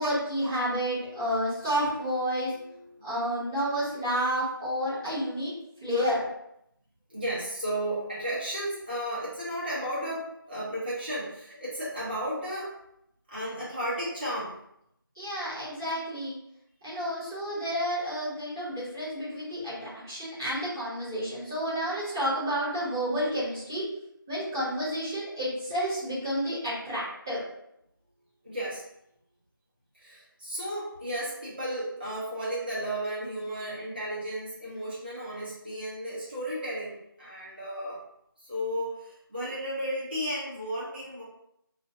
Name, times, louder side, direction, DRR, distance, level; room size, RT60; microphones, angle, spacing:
voice 1, 0.0-2.5 3.0-5.5 5.8-6.2 15.1-16.3 16.8-23.9 24.3-27.4, equal, 10° right, -13 dB, 0.6 m, -30 dB
voice 2, 0.9-1.3 2.5-3.1 7.1-12.7 13.3-14.6 28.4-28.8 29.9-38.0 38.4-41.2, equal, 25° right, -9 dB, 1.0 m, -34 dB
2.9 x 2.4 x 2.6 m, 0.78 s
figure-of-eight pair, 170°, 12 cm